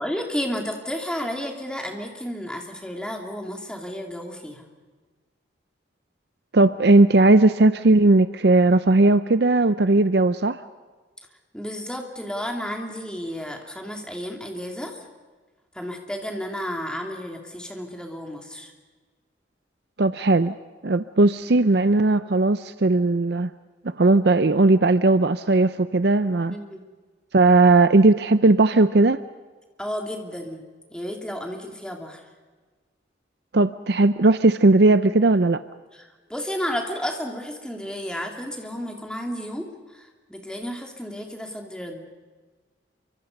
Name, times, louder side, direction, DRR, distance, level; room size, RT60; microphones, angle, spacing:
voice 1, 0.0-4.7 11.5-15.1 15.7-18.7 26.5-26.8 29.8-32.2 35.9-42.1, equal, 5° left, 2 dB, 2.9 m, -32 dB
voice 2, 6.5-10.6 20.0-20.5 20.8-23.5 24.0-26.6 27.3-29.2 33.5-35.6, right 2 dB, 60° right, 12 dB, 0.6 m, -17 dB
28.5 x 24.5 x 5.4 m, 1.4 s
head